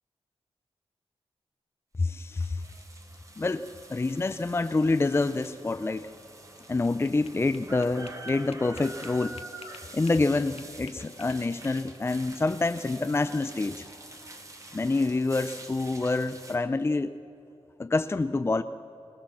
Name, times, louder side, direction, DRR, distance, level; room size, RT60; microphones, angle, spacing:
voice 1, 2.0-2.6 3.4-6.1 6.7-9.3 9.9-13.8 14.7-17.2 17.8-18.6, left 3 dB, 25° left, 10 dB, 0.5 m, -27 dB
sound 1, 2.1-16.6, right 2 dB, 30° right, 2.0 m, -46 dB
sound 2, 6.4-10.3 10.6-12.1, left 5 dB, 70° left, 1.2 m, -50 dB
20.0 x 18.5 x 7.4 m, 2.9 s
wide cardioid pair, 105°, 11 cm